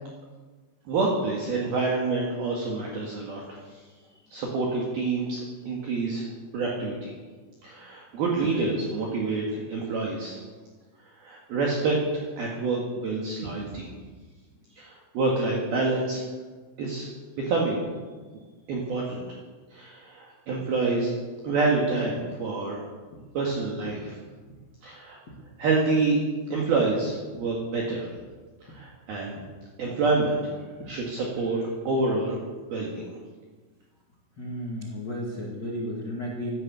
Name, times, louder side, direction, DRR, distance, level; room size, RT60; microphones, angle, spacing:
voice 1, 0.9-3.6 4.3-5.4 5.7-7.1 7.6-10.4 11.2-13.9 14.7-16.2 16.8-17.1 17.4-17.8 18.7-19.2 19.7-21.1 21.4-22.8 23.3-24.2 24.8-25.2 25.6-26.2 26.5-28.1 28.6-29.4 29.8-30.5 30.9-32.4 32.7-33.2, right 3 dB, 55° right, -2 dB, 3.3 m, -27 dB
voice 2, 34.4-36.5, equal, 40° left, -3 dB, 1.5 m, -34 dB
16.0 x 12.5 x 7.0 m, 1.4 s
omnidirectional pair, 5.9 m